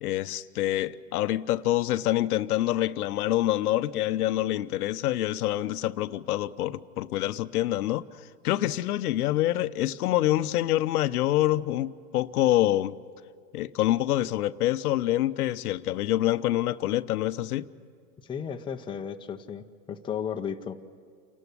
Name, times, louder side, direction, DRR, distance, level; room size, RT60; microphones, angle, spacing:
voice 1, 0.0-8.0 8.4-13.0 13.5-17.7, left 14 dB, 70° left, 0.8 m, -26 dB
voice 2, 18.2-20.8, left 7 dB, 10° left, 0.7 m, -34 dB
27.5 x 12.5 x 9.8 m
hypercardioid pair, 120°, 46 cm